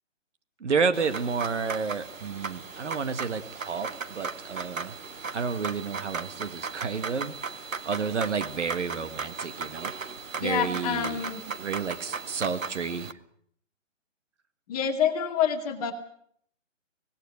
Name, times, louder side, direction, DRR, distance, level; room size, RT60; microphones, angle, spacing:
voice 1, 0.6-4.9 5.3-7.3 7.8-9.9 10.4-11.2 11.5-13.1, right 5 dB, 65° right, 8 dB, 2.0 m, -30 dB
sound 1, 0.9-13.1, right 5 dB, 85° right, 1.3 m, -37 dB
voice 2, 10.4-11.4 14.7-15.9, left 8 dB, 30° left, 3 dB, 2.3 m, -27 dB
25.0 x 19.0 x 6.6 m, 0.65 s
hypercardioid pair, 150°, 38 cm